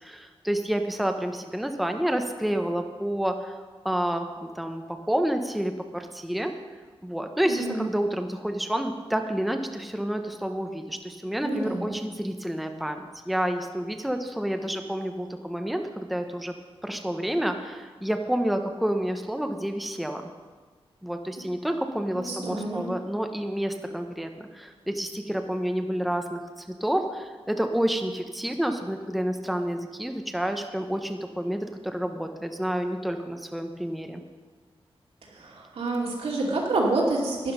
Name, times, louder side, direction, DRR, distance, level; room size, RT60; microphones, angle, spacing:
voice 1, 0.0-3.6 3.8-6.5 7.0-16.5 16.8-20.2 21.0-34.2, equal, ahead, 5 dB, 0.7 m, -29 dB
voice 2, 7.5-7.8 11.4-11.9 22.1-22.9 35.3-37.5, right 2 dB, 85° right, -2 dB, 2.7 m, -28 dB
11.5 x 10.5 x 5.4 m, 1.5 s
wide cardioid pair, 160°, 10 cm